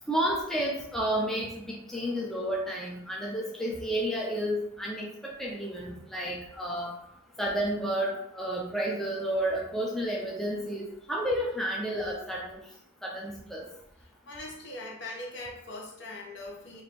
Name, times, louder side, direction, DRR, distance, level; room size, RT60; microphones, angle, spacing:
voice 1, 0.1-6.9 7.4-12.6 13.0-13.6, right 1 dB, ahead, -3 dB, 0.5 m, -31 dB
voice 2, 14.0-16.8, left 2 dB, 60° left, -2 dB, 1.0 m, -41 dB
3.1 x 2.6 x 4.1 m, 0.79 s
head